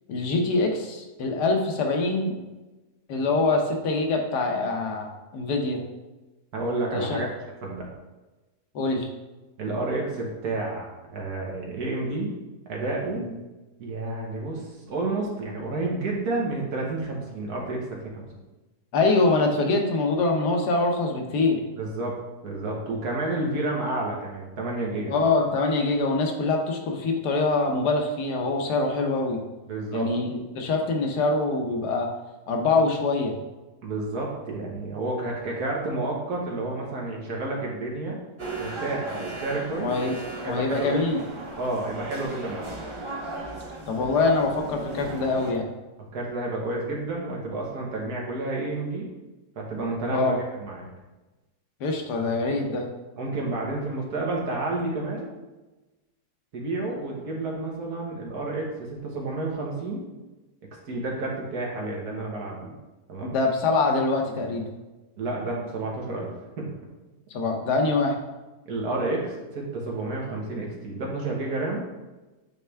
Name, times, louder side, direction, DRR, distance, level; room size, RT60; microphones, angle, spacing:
voice 1, 0.1-2.4 3.1-5.9 6.9-7.2 8.7-9.1 13.1-13.3 18.9-21.6 25.1-29.4 29.9-32.1 32.5-33.4 39.8-41.2 43.9-45.7 50.1-50.4 51.8-52.8 63.2-64.7 67.3-68.2, left 3 dB, 85° left, 2 dB, 1.5 m, -24 dB
voice 2, 6.5-7.3 7.6-7.9 9.6-12.3 12.7-13.2 13.8-17.8 18.1-18.3 21.8-22.2 22.4-25.2 29.7-30.1 33.8-38.2 38.6-40.0 40.4-41.0 41.6-42.7 46.1-49.1 49.6-50.3 50.6-50.9 53.2-55.3 56.5-60.0 60.9-62.7 63.1-63.4 65.2-66.3 66.6-66.7 68.7-71.9, right 2 dB, 70° right, -2 dB, 1.8 m, -30 dB
sound 1, 38.4-45.5, right 2 dB, 30° right, 0.5 m, -36 dB
8.9 x 3.3 x 3.4 m, 1.1 s
omnidirectional pair, 1.7 m